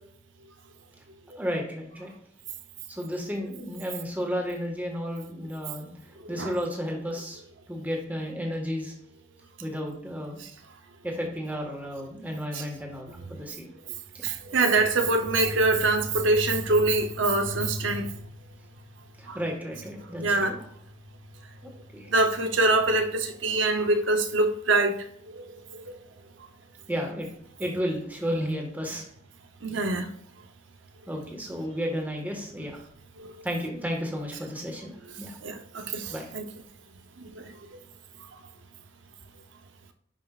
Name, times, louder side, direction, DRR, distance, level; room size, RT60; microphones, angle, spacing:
voice 1, 1.3-2.1 2.9-7.4 7.7-8.9 9.6-10.4 11.0-13.7 14.1-14.3 19.2-20.7 21.9-22.1 26.9-27.3 27.6-29.1 29.7-29.9 31.1-32.8 33.4-35.4 36.1-36.3, equal, 10° right, 1.5 m, -33 dB
voice 2, 14.2-18.1 19.3-19.4 20.2-20.5 22.1-25.0 25.3-26.0 29.6-30.1 33.2-33.3 35.4-36.4 37.2-37.5, right 2 dB, 85° right, 0.8 m, -24 dB
10.5 x 5.2 x 2.4 m
head